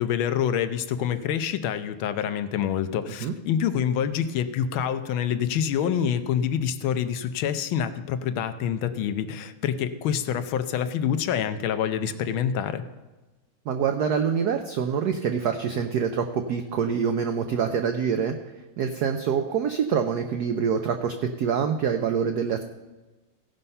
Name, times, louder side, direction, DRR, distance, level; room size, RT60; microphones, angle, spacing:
voice 1, 0.0-12.8, left 8 dB, 75° left, 11 dB, 1.3 m, -26 dB
voice 2, 13.7-18.3 18.8-22.6, right 7 dB, 90° right, 6 dB, 0.8 m, -25 dB
16.0 x 5.6 x 5.4 m, 1.2 s
omnidirectional pair, 2.4 m